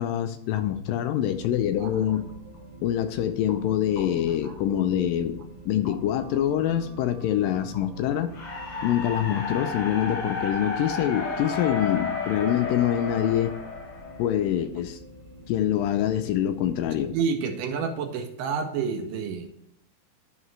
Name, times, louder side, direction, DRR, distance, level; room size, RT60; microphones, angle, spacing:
voice 1, 0.0-2.3 2.8-8.3 8.8-13.6 14.2-15.0 15.5-17.2, left 11 dB, 80° left, 9 dB, 2.1 m, -25 dB
sound 1, 1.2-17.2, right 1 dB, 40° right, 1.7 m, -47 dB
sound 2, 2.1-9.6, left 1 dB, 40° left, 1.5 m, -47 dB
sound 3, 8.3-14.5, left 4 dB, 60° left, 4.3 m, -32 dB
voice 2, 17.1-19.5, right 6 dB, 75° right, 6 dB, 2.2 m, -29 dB
11.0 x 5.4 x 3.2 m, 0.75 s
omnidirectional pair, 4.3 m